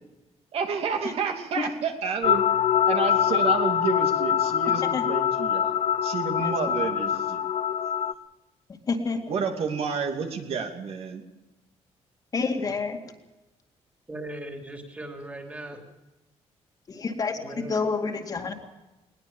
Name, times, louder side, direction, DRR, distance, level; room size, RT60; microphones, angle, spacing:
voice 1, 0.5-2.4 2.9-5.7 6.0-7.4 9.3-11.2, right 6 dB, 60° right, 5 dB, 2.8 m, -30 dB
sound 1, 2.2-8.1, left 9 dB, 60° left, 0.8 m, -24 dB
voice 2, 6.4-6.7 8.9-9.2 12.3-13.0 16.9-18.5, left 4 dB, 35° left, 4 dB, 2.2 m, -28 dB
voice 3, 14.1-15.8 17.4-17.7, right 1 dB, 10° right, 4 dB, 3.3 m, -38 dB
20.5 x 19.5 x 7.5 m, 1.0 s
cardioid pair, 160°, 11 cm